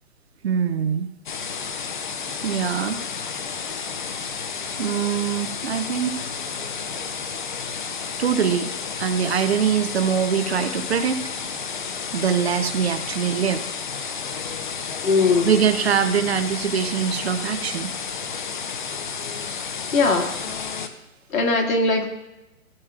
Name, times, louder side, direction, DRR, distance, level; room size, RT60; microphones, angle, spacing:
voice 1, 0.4-1.1 2.4-3.0 4.8-6.2 8.2-8.7 9.0-11.2 12.1-13.6 15.4-17.9, right 7 dB, 45° right, 10 dB, 0.7 m, -23 dB
sound 1, 1.3-20.9, left 6 dB, 35° left, 0.6 m, -31 dB
voice 2, 15.0-15.5 19.9-20.3 21.3-22.1, left 3 dB, 75° left, 2 dB, 2.0 m, -19 dB
15.0 x 7.3 x 2.4 m, 0.99 s
hypercardioid pair, 155°, 43 cm